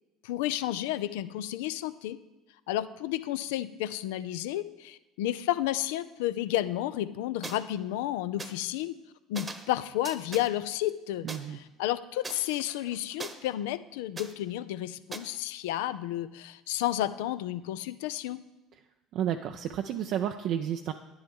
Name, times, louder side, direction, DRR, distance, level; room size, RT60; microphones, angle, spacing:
voice 1, 0.2-2.2 2.7-8.9 9.3-18.4, left 13 dB, 70° left, 14 dB, 0.4 m, -32 dB
sound 1, 7.4-7.6 8.4-8.5 9.3-9.7 10.0-10.5 11.3-11.4 12.2-13.3 14.2-14.3 15.1-15.2, right 3 dB, 25° right, 1.0 m, -40 dB
voice 2, 11.2-11.6 19.1-20.9, right 10 dB, 55° right, 6 dB, 0.4 m, -31 dB
10.5 x 9.8 x 3.6 m, 1.0 s
figure-of-eight pair, 60°, 0 cm